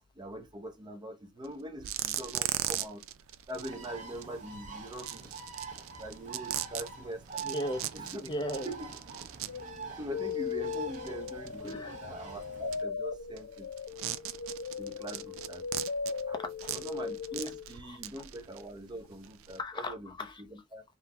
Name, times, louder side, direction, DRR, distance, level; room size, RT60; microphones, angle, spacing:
voice 1, 0.2-3.0 3.5-5.4 6.0-7.4 7.9-8.2 8.6-9.0 10.0-13.7 14.8-15.7 16.3-16.4 16.7-20.8, right 1 dB, 20° right, 0.6 m, -43 dB
sound 1, 1.4-1.5 1.8-19.6, right 13 dB, 85° right, 0.4 m, -40 dB
Bird, 3.5-12.8, right 5 dB, 35° right, 1.1 m, -45 dB
voice 2, 7.4-7.8 8.2-8.7 11.6-12.0 16.3-16.7 19.6-20.4, left 1 dB, 20° left, 0.6 m, -36 dB
sound 2, 9.5-17.7, left 5 dB, 65° left, 0.3 m, -38 dB
3.7 x 2.2 x 2.8 m
head